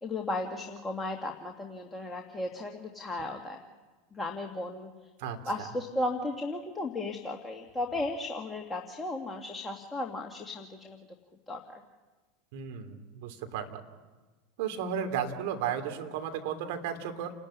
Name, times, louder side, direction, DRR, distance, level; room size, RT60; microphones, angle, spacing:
voice 1, 0.0-3.6 4.1-4.9 5.5-11.0 11.5-11.8, left 2 dB, 15° left, 2 dB, 2.2 m, -35 dB
voice 2, 12.5-13.8 14.6-17.3, right 8 dB, 65° right, 6 dB, 2.8 m, -34 dB
29.5 x 12.0 x 9.8 m, 1.3 s
hypercardioid pair, 85°, 0 cm